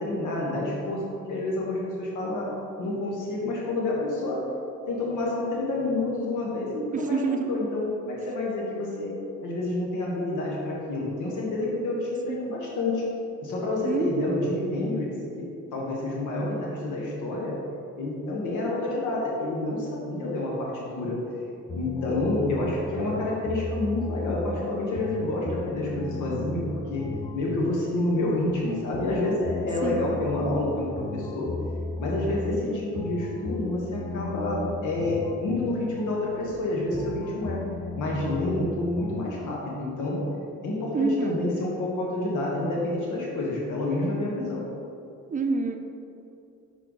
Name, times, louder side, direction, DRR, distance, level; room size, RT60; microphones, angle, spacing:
voice 1, 0.0-4.4 4.9-9.1 9.4-13.0 13.4-15.1 15.4-15.5 15.7-17.6 18.0-21.2 21.7-31.5 32.0-37.6 37.9-40.2 40.6-44.6, left 2 dB, 80° left, -3 dB, 1.3 m, -28 dB
voice 2, 6.9-7.5 13.8-14.2 29.8-30.2 40.9-41.5 45.3-45.8, right 4 dB, 25° right, 3 dB, 0.6 m, -27 dB
sound 1, 21.7-39.2, left 2 dB, 15° left, 0.4 m, -36 dB
6.0 x 4.4 x 3.9 m, 2.6 s
cardioid pair, 90°, 30 cm